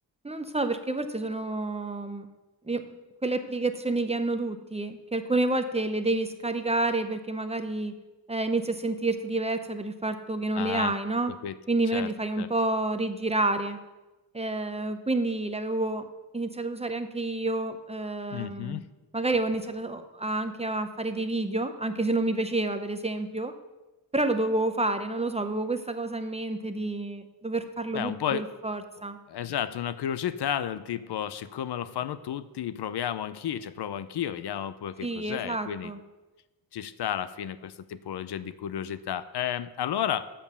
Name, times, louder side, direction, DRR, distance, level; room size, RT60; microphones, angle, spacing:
voice 1, 0.2-2.3 2.7-2.9 3.2-7.9 8.3-11.3 11.7-13.8 14.3-16.1 16.3-18.8 19.1-23.5 24.1-29.2 35.0-36.0, right 2 dB, 15° right, 8 dB, 0.6 m, -29 dB
voice 2, 10.5-10.9 11.4-11.6 11.9-12.1 12.4-12.5 18.3-18.8 27.9-28.4 29.3-35.9 36.7-40.3, left 10 dB, 75° left, 15 dB, 0.6 m, -32 dB
7.5 x 7.1 x 6.8 m, 1.1 s
wide cardioid pair, 105°, 40 cm